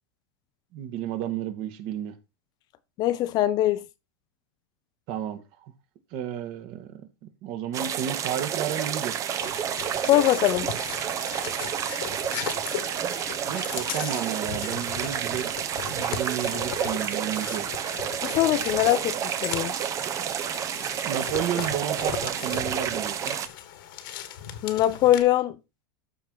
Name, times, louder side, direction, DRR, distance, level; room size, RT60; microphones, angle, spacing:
voice 1, 0.7-2.1 5.1-5.4 6.1-7.1 7.4-9.2 13.5-15.5 15.9-17.7 21.0-23.4, right 10 dB, 45° right, 1.7 m, -32 dB
voice 2, 3.0-3.8 10.0-10.7 18.2-19.7 24.6-25.6, left 13 dB, 35° left, 0.7 m, -22 dB
sound 1, 7.7-23.5, right 9 dB, 25° right, 0.8 m, -30 dB
sound 2, 9.4-25.2, left 10 dB, 60° left, 1.8 m, -38 dB
13.5 x 4.7 x 4.0 m
supercardioid pair, 145°, 12 cm